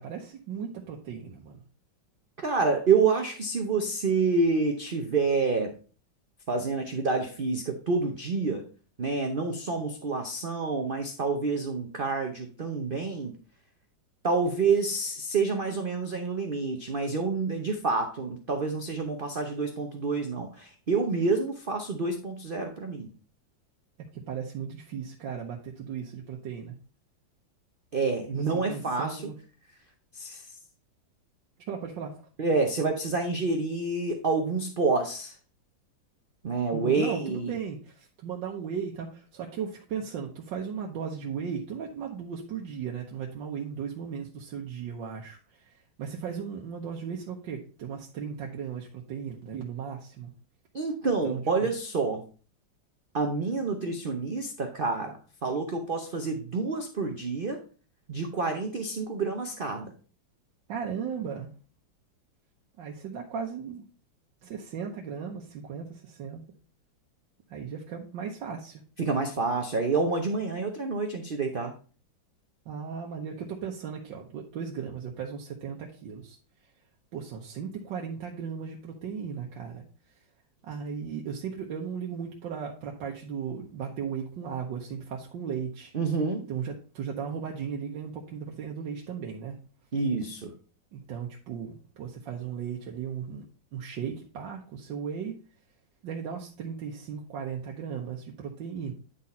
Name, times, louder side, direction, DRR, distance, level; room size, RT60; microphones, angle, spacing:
voice 1, 0.0-1.6 24.1-26.8 28.4-29.3 31.7-32.2 36.7-50.3 51.2-51.7 60.7-61.5 62.8-63.8 64.4-66.4 67.5-68.8 72.6-76.4 77.1-79.8 80.6-85.9 86.5-89.6 90.9-93.5 93.7-95.4 96.0-98.9, right 7 dB, 70° right, 0 dB, 1.6 m, -36 dB
voice 2, 2.4-5.8 6.5-8.6 9.0-13.4 14.2-23.1 27.9-29.2 30.1-30.5 32.4-35.4 36.4-37.6 50.7-52.3 53.1-57.6 58.1-59.9 69.0-71.7 85.9-86.5 89.9-90.5, right 4 dB, 55° right, 4 dB, 0.6 m, -28 dB
9.7 x 4.1 x 4.2 m, 0.39 s
omnidirectional pair, 2.1 m